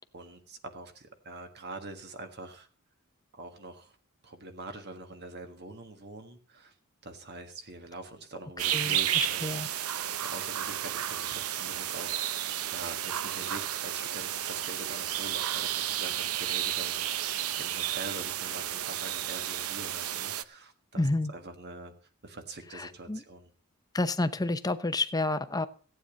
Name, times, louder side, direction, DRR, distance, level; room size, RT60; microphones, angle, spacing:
voice 1, 0.0-2.7 3.3-4.0 4.2-6.8 7.0-21.0 21.3-21.9 22.2-23.5, right 2 dB, 50° right, 7 dB, 1.6 m, -44 dB
sound 1, 8.6-20.4, right 11 dB, 80° right, 0.7 m, -32 dB
voice 2, 8.7-9.7 20.9-21.3 22.7-23.2 23.9-25.7, left 2 dB, 15° left, 11 dB, 0.8 m, -30 dB
15.5 x 8.9 x 5.3 m, 0.43 s
head